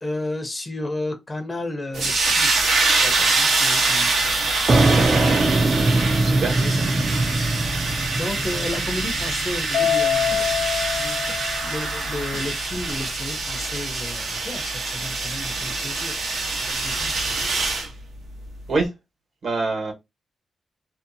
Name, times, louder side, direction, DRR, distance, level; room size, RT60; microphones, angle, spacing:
voice 1, 0.0-4.5 6.6-7.5 8.1-10.6 10.9-16.2 16.7-17.1, left 2 dB, 25° left, 0.5 m, -33 dB
sound 1, 1.9-17.9, right 3 dB, 90° right, 0.8 m, -24 dB
voice 2, 3.0-3.3 6.2-6.6 18.7-18.9 19.4-19.9, right 3 dB, 70° right, 1.2 m, -25 dB
sound 2, 4.7-12.1, right 2 dB, 35° right, 0.4 m, -22 dB
Mallet percussion, 9.7-12.2, left 10 dB, 75° left, 0.3 m, -25 dB
2.6 x 2.0 x 2.5 m
wide cardioid pair, 115°, 0 cm